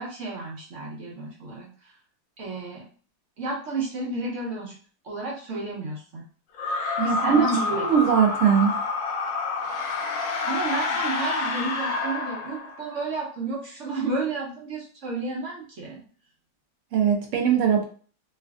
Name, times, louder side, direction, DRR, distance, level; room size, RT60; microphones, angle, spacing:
voice 1, 0.0-1.9 2.4-2.8 3.4-4.7 5.0-6.2 7.0-7.8 10.4-16.0, right 3 dB, 50° right, -3 dB, 1.0 m, -31 dB
sound 1, 6.5-13.0, left 4 dB, 75° left, 0.7 m, -28 dB
voice 2, 7.0-7.4 7.7-8.8 16.9-17.8, right 7 dB, 80° right, 2 dB, 0.6 m, -21 dB
3.2 x 2.5 x 2.4 m, 0.42 s
omnidirectional pair, 2.0 m